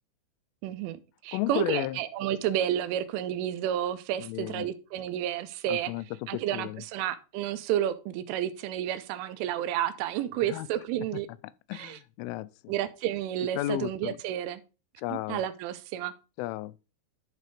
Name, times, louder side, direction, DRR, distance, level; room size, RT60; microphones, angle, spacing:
voice 1, 0.6-5.9 6.3-11.3 11.7-12.0 12.7-14.6 15.1-16.1, right 11 dB, 85° right, 3.2 m, -31 dB
voice 2, 1.3-2.0 4.2-4.7 5.7-6.0 6.3-6.8 10.5-10.7 11.7-12.7 13.5-14.2 15.0-15.4 16.4-16.7, left 17 dB, 85° left, 3.0 m, -33 dB
11.5 x 4.2 x 4.9 m
omnidirectional pair, 5.6 m